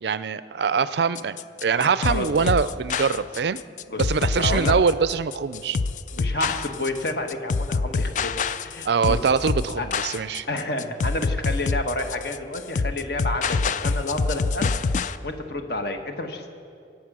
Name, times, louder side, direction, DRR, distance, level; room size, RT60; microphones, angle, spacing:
voice 1, 0.0-3.6 4.0-5.8 8.8-10.5, right 5 dB, 65° right, 15 dB, 0.4 m, -23 dB
sound 1, 1.1-15.2, left 4 dB, 40° left, 0.3 m, -26 dB
voice 2, 1.8-2.3 3.9-4.8 6.1-8.3 8.6-9.2 9.8-9.9 10.5-14.7 15.2-16.5, left 2 dB, 55° left, 5 dB, 1.4 m, -30 dB
23.5 x 8.6 x 6.2 m, 2.4 s
head